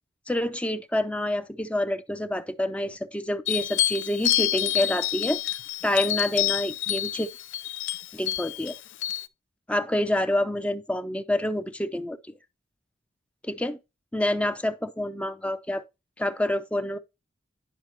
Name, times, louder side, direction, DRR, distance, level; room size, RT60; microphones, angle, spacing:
voice 1, 0.3-5.4 5.8-7.3 8.1-8.7 9.7-12.2 13.4-13.8 14.1-15.8 16.2-17.0, left 1 dB, 5° left, 0.5 m, -27 dB
sound 1, 3.5-9.3, left 13 dB, 70° left, 0.5 m, -28 dB
10.5 x 5.7 x 2.9 m
head